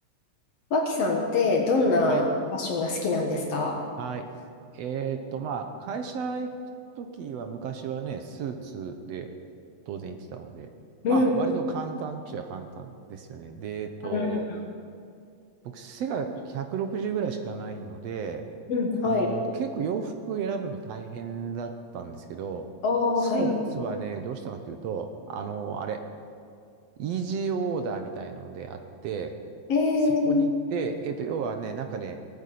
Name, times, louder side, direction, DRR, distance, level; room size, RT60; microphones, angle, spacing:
voice 1, 0.7-3.8 11.0-11.3 14.0-14.6 18.7-19.3 22.8-23.5 29.7-30.5, left 3 dB, 60° left, 1 dB, 2.4 m, -24 dB
voice 2, 4.0-4.3 4.7-6.5 7.0-9.3 9.9-10.7 11.1-14.4 15.6-18.4 19.0-22.7 23.2-26.1 27.0-29.4 30.3-32.2, right 6 dB, 70° right, 6 dB, 1.9 m, -33 dB
19.0 x 9.0 x 8.4 m, 2.3 s
omnidirectional pair, 3.4 m